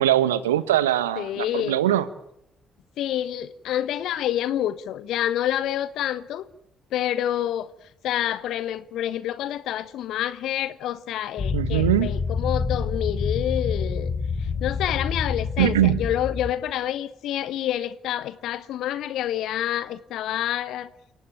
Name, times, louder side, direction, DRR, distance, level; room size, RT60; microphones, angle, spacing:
voice 1, 0.0-2.1 11.5-12.1 15.6-16.0, right 12 dB, 80° right, 1.2 m, -21 dB
voice 2, 1.2-1.8 3.0-6.4 6.9-7.7 8.0-14.1 14.4-20.9, left 11 dB, 65° left, 1.2 m, -28 dB
sound 1, 11.4-16.5, left 5 dB, 45° left, 7.3 m, -27 dB
28.5 x 17.0 x 8.8 m
figure-of-eight pair, 45°, 0 cm